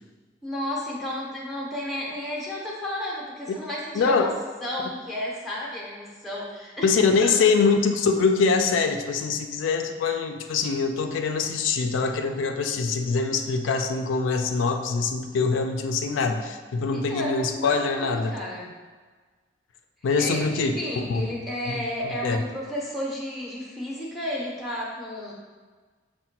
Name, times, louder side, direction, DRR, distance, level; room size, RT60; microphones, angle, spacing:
voice 1, 0.4-4.3 4.6-7.4 16.9-18.7 20.2-25.3, left 1 dB, ahead, -5 dB, 0.5 m, -32 dB
voice 2, 3.9-4.3 6.8-18.4 20.0-21.8 22.2-22.4, left 4 dB, 80° left, 5 dB, 0.3 m, -24 dB
5.7 x 2.1 x 2.8 m, 1.4 s
head